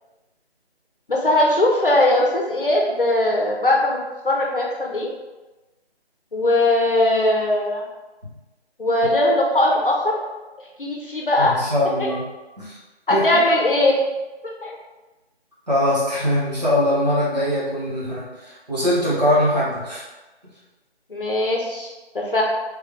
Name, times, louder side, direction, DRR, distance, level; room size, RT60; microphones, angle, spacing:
voice 1, 1.1-4.0 4.2-5.1 6.3-7.8 8.8-10.2 10.8-11.6 12.0-12.1 13.1-13.9 14.4-14.8 21.1-22.4, left 1 dB, 55° left, -1 dB, 0.7 m, -20 dB
voice 2, 11.4-12.2 12.6-12.8 13.1-13.2 15.7-20.0, left 1 dB, 40° right, -8 dB, 1.3 m, -22 dB
3.4 x 3.1 x 3.1 m, 1.1 s
figure-of-eight pair, 180°, 32 cm